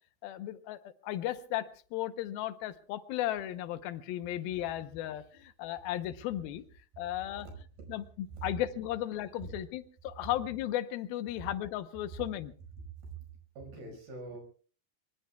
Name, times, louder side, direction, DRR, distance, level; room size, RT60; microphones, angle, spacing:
voice 1, 0.2-6.6 7.0-7.5 7.9-8.0 8.4-12.5, left 13 dB, 80° left, 2.7 m, -35 dB
voice 2, 7.4-8.0 8.3-8.5 9.4-9.6 10.3-10.4 11.4-11.5 12.1-12.3 12.8-14.4, right 5 dB, 85° right, 7.3 m, -45 dB
24.0 x 23.0 x 2.3 m
omnidirectional pair, 4.4 m